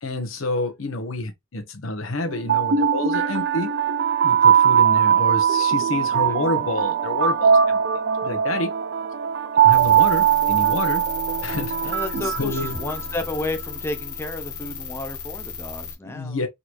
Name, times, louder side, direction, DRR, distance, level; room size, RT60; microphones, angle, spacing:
voice 1, 0.0-3.7 4.2-7.8 8.2-8.7 9.6-11.0 11.4-12.8 16.0-16.5, left 2 dB, 80° left, 1.1 m, -28 dB
sound 1, 2.3-13.4, right 8 dB, 60° right, 0.4 m, -20 dB
sound 2, 9.7-15.9, left 6 dB, 60° left, 1.2 m, -34 dB
voice 2, 11.8-16.4, left 2 dB, 10° left, 0.5 m, -32 dB
3.9 x 3.1 x 2.5 m
head